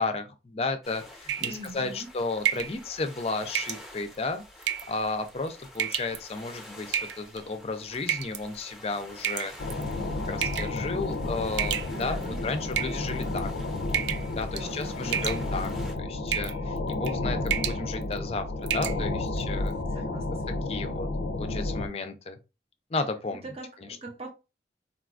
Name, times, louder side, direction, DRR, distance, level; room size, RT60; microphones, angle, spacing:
voice 1, 0.0-4.4 4.9-9.5 10.0-13.5 14.3-15.7 16.0-19.7 20.3-21.1 21.4-22.4 22.9-23.5, left 3 dB, 35° left, 0.4 m, -33 dB
sound 1, 0.8-15.9, left 1 dB, ahead, 0.7 m, -49 dB
sound 2, 1.3-1.7 2.4-2.8 3.5-3.8 4.6-5.0 5.7-6.2 6.9-7.4 8.1-8.4 9.2-9.8 10.4-10.8 11.6-12.2 12.7-13.4 13.9-14.3 14.6-14.8 15.1-15.7 16.3-16.6 16.9-17.2 17.5-17.8 18.2-18.3 18.7-19.0, right 10 dB, 75° right, 0.3 m, -30 dB
voice 2, 1.4-2.1 11.9-12.5 14.4-15.4 19.9-20.7 23.4-24.3, right 2 dB, 35° right, 0.7 m, -42 dB
sound 3, 9.6-21.9, left 2 dB, 90° left, 0.4 m, -31 dB
3.9 x 2.3 x 2.4 m
head